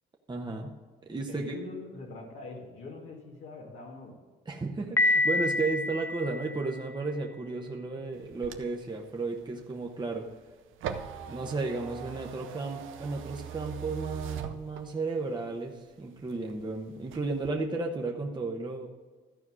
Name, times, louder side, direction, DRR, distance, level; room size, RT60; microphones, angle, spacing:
voice 1, 0.3-0.7 1.0-1.6 4.5-10.3 11.3-18.9, right 3 dB, 20° right, 1 dB, 1.1 m, -33 dB
voice 2, 1.1-4.2, left 3 dB, 90° left, -2 dB, 2.1 m, -43 dB
Piano, 5.0-6.9, left 2 dB, 10° left, 0.5 m, -27 dB
sound 1, 8.1-15.2 15.7-16.7 17.0-17.5, right 8 dB, 85° right, 0.8 m, -41 dB
13.5 x 4.7 x 6.2 m, 1.4 s
cardioid pair, 90°, 20 cm